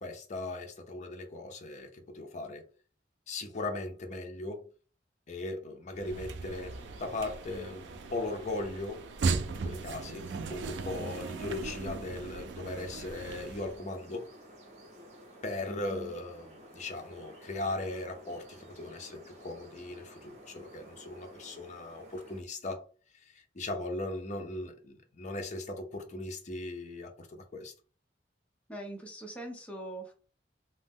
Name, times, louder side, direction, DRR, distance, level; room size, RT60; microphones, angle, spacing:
voice 1, 0.0-2.6 3.3-4.7 5.3-9.0 9.5-14.3 15.4-22.8 23.1-27.7, left 2 dB, 45° left, 0.6 m, -38 dB
sound 1, 5.9-13.8, right 4 dB, 80° right, 0.4 m, -37 dB
sound 2, 6.5-22.4, right 1 dB, 40° right, 0.9 m, -53 dB
voice 2, 15.7-16.1 28.7-30.1, right 1 dB, 10° left, 0.7 m, -42 dB
2.7 x 2.1 x 3.5 m
head